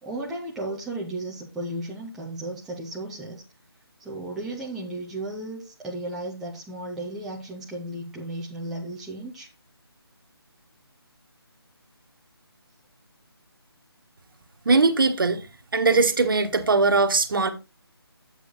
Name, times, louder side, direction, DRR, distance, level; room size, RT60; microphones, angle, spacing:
voice 1, 0.0-3.4 4.0-9.5, right 1 dB, ahead, 0.4 m, -34 dB
voice 2, 14.6-15.5 15.7-17.5, right 3 dB, 55° right, 1.3 m, -20 dB
7.9 x 6.7 x 4.0 m
figure-of-eight pair, 155°, 13 cm